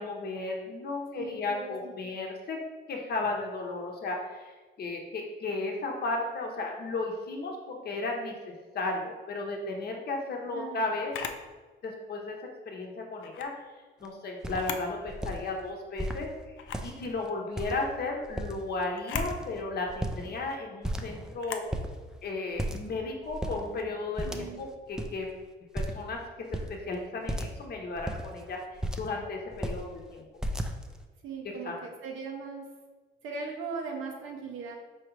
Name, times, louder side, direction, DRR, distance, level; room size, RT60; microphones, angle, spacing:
voice 1, 0.0-2.6 2.9-11.1 11.8-12.4 12.6-13.6 14.0-21.7 22.2-25.3 25.7-28.6 29.0-30.2 31.4-31.7, left 3 dB, 50° left, 1 dB, 0.8 m, -34 dB
voice 2, 1.1-1.8 2.0-2.1 10.5-10.8 24.2-24.6 31.2-32.7 33.2-34.8, right 4 dB, 80° right, 1 dB, 0.6 m, -39 dB
Camera, 11.1-11.5 13.2-13.5 14.5-14.9 15.4-15.5 16.6-16.9 19.0-19.3 21.4-21.7, left 7 dB, 75° left, 0.4 m, -38 dB
sound 1, 14.0-14.1 14.4-14.7 15.1-15.4 16.0-16.2 16.6-17.1 17.6-18.0 18.2-18.7 19.1-19.6 19.9-20.5 20.8-21.4 21.7-21.9 22.6-23.0 23.3-23.6 24.2-24.7 24.9-25.1 25.7-26.1 26.5-26.7 27.3-27.6 27.9-29.2 29.5-29.8 30.4-31.0, right 1 dB, 5° right, 0.3 m, -34 dB
4.8 x 2.9 x 3.1 m, 1.3 s
cardioid pair, 90°, 20 cm